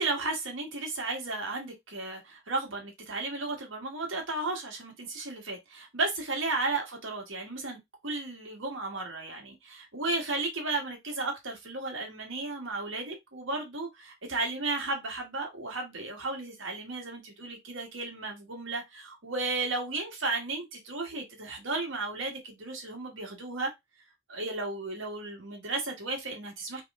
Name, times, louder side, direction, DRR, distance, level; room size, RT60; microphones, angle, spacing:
voice 1, 0.0-23.7 24.3-26.8, right 3 dB, 70° right, 1.5 m, -34 dB
3.4 x 3.2 x 3.5 m
head